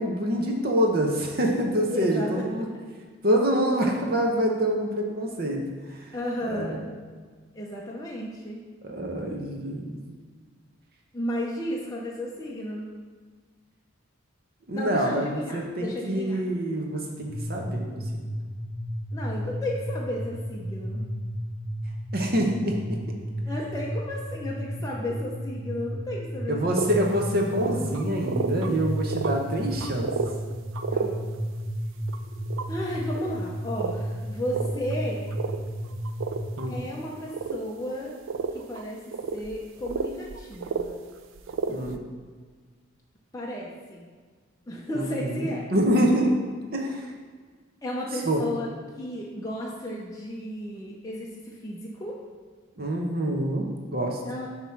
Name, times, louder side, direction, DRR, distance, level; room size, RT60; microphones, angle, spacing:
voice 1, 0.0-2.7 3.2-5.6 5.9-6.1 6.4-6.8 8.8-10.0 14.7-15.3 15.5-18.0 22.1-22.8 26.5-30.1 36.6-36.8 41.7-42.0 44.9-46.3 46.7-47.1 48.2-48.4 52.8-54.2, right 1 dB, 45° right, 1 dB, 0.9 m, -26 dB
voice 2, 1.9-2.5 6.1-6.8 7.5-8.6 11.1-12.9 14.7-16.4 19.1-21.0 23.4-27.0 30.9-31.2 32.7-35.3 36.7-38.1 38.5-41.0 43.3-44.1 44.7-45.7 47.8-48.7 49.0-52.2 54.2-54.5, left 1 dB, 15° left, -4 dB, 0.6 m, -33 dB
sound 1, 17.2-36.8, equal, 50° left, 1.1 m, -33 dB
sound 2, 26.8-26.9 27.1-27.2 27.5-28.7 29.0-29.4 29.8-30.3 30.7-31.1 32.1-32.7 33.1-33.4 33.8-34.0 34.5-34.9 35.3-35.6 36.0-36.7 37.3-37.6 37.9-38.0 38.3-38.8 39.1-40.9 41.3-41.9, right 5 dB, 70° right, 0.4 m, -30 dB
7.2 x 3.1 x 5.7 m, 1.5 s
head